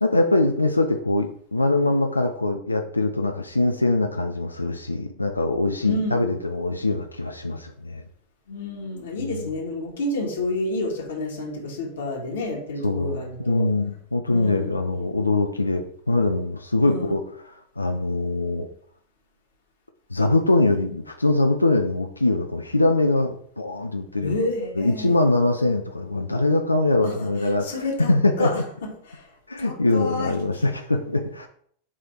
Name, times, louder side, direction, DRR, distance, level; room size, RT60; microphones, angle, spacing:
voice 1, 0.0-8.0 9.2-9.5 12.8-18.7 20.1-24.4 24.8-28.6 29.5-31.5, left 2 dB, 85° left, 5 dB, 0.5 m, -23 dB
voice 2, 5.8-6.2 8.5-13.6 14.3-15.1 16.8-17.1 24.2-25.2 27.0-27.2 27.6-28.1 28.4-28.5 29.1-29.2 29.6-30.3, left 2 dB, 65° left, 0 dB, 1.9 m, -29 dB
7.3 x 3.4 x 4.4 m, 0.62 s
figure-of-eight pair, 90°, 0 cm